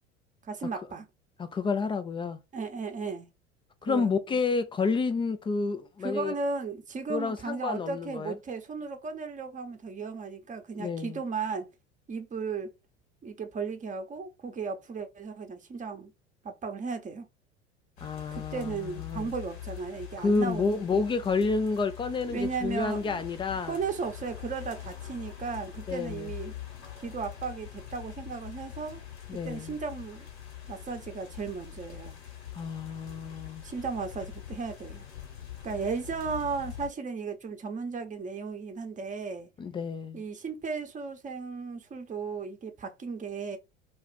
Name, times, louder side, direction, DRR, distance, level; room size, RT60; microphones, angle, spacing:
voice 1, 0.4-1.1 2.5-3.3 3.8-4.2 6.0-11.7 12.1-12.7 13.2-16.1 16.4-17.3 18.3-21.0 22.3-23.2 23.7-26.5 27.0-29.0 29.3-30.3 30.7-32.2 33.6-35.0 35.6-39.5 40.1-43.6, right 5 dB, 20° right, 0.8 m, -35 dB
voice 2, 1.4-2.4 3.8-6.4 7.1-8.4 10.8-11.2 18.0-19.3 20.2-23.8 25.9-26.3 29.3-29.8 32.5-33.6 39.6-40.2, left 4 dB, 15° left, 0.3 m, -30 dB
sound 1, 18.0-36.9, left 11 dB, 70° left, 1.3 m, -44 dB
2.4 x 2.4 x 3.7 m
hypercardioid pair, 75°, 34 cm